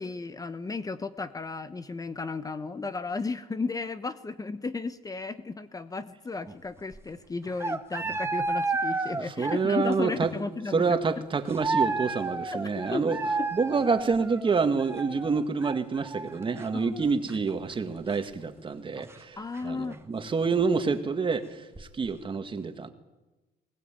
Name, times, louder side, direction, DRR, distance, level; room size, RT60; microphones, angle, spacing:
voice 1, 0.0-11.0 12.5-12.6 12.9-13.0 13.4-13.5 16.7-17.0 19.4-20.0, left 4 dB, 20° left, 12 dB, 1.0 m, -34 dB
sound 1, 6.5-6.6 6.8-7.0 7.5-9.9 10.2-10.3 11.5-17.7 18.1-18.2 19.0-19.1 19.5-19.6 19.9-20.0 21.8-22.1, right 3 dB, 15° right, 1.7 m, -31 dB
voice 2, 9.2-10.3 10.7-13.2 13.5-19.4 19.6-22.9, right 5 dB, 30° right, 8 dB, 2.0 m, -27 dB
21.0 x 18.5 x 9.1 m, 1.1 s
cardioid pair, 110°, 17 cm